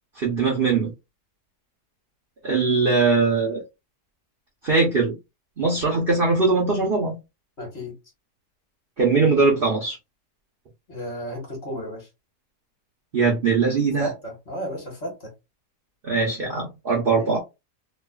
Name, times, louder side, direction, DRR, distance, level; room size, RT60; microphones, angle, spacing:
voice 1, 0.2-0.9 2.4-3.6 4.6-5.2 5.6-7.2 9.0-10.0 13.1-14.1 16.0-17.4, right 4 dB, 55° right, 0.6 m, -21 dB
voice 2, 7.6-7.9 10.9-12.1 14.0-15.3 17.2-17.3, right 1 dB, 40° left, 1.4 m, -33 dB
3.0 x 2.3 x 2.2 m
omnidirectional pair, 1.7 m